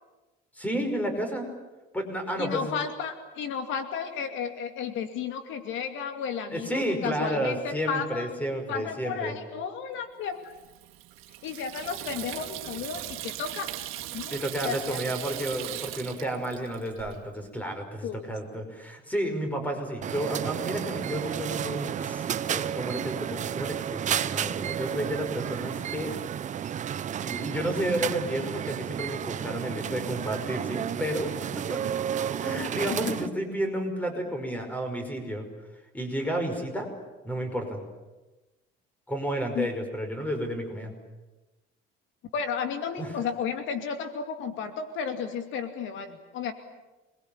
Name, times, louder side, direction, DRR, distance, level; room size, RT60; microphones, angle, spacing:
voice 1, 0.6-1.5 1.9-2.7 6.5-9.3 14.3-26.1 27.2-31.8 32.4-35.5 35.9-36.9 37.2-37.8 39.1-40.9 43.0-43.1, right 1 dB, 5° left, 5 dB, 5.5 m, -31 dB
voice 2, 2.4-8.3 8.7-10.5 11.4-13.7 14.1-14.3 14.6-15.0 18.0-18.3 32.9-33.2 39.5-39.7 42.3-46.5, left 6 dB, 65° left, 7 dB, 2.5 m, -33 dB
Water tap faucet / Sink (filling or washing), 10.4-17.2, right 15 dB, 75° right, 2.4 m, -39 dB
sound 1, 20.0-33.3, right 9 dB, 35° right, 0.9 m, -32 dB
27.0 x 22.0 x 8.8 m, 1.1 s
cardioid pair, 145°, 21 cm